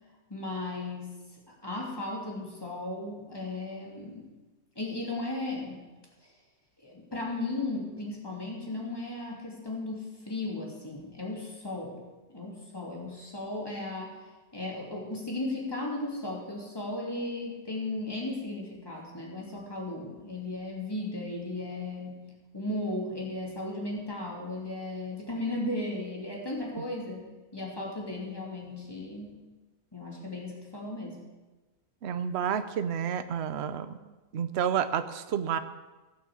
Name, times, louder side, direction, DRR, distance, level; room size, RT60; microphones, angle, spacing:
voice 1, 0.3-1.1 1.5-4.3 4.7-5.9 6.2-6.3 6.8-12.0 12.3-14.1 14.5-22.3 22.5-27.2 27.5-29.4 29.9-31.2, left 2 dB, 15° left, -2 dB, 2.8 m, -36 dB
voice 2, 32.0-34.0 34.3-35.6, right 8 dB, 55° right, 10 dB, 0.8 m, -30 dB
17.0 x 6.2 x 7.0 m, 1.2 s
omnidirectional pair, 1.6 m